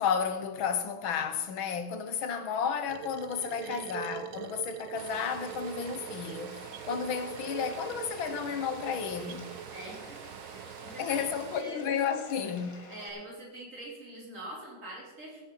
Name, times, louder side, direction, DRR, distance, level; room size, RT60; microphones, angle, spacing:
voice 1, 0.0-9.5 11.0-12.9, left 7 dB, 85° left, 1.9 m, -32 dB
sound 1, 2.9-10.0, right 11 dB, 85° right, 1.4 m, -43 dB
sound 2, 5.0-11.6, right 10 dB, 65° right, 1.0 m, -46 dB
Bathtub (filling or washing), 5.1-13.1, left 3 dB, 45° left, 1.9 m, -51 dB
voice 2, 9.7-10.2 10.5-11.3 11.5-11.8 12.9-15.4, right 1 dB, 40° right, 4.3 m, -44 dB
16.0 x 7.3 x 5.5 m
omnidirectional pair, 2.1 m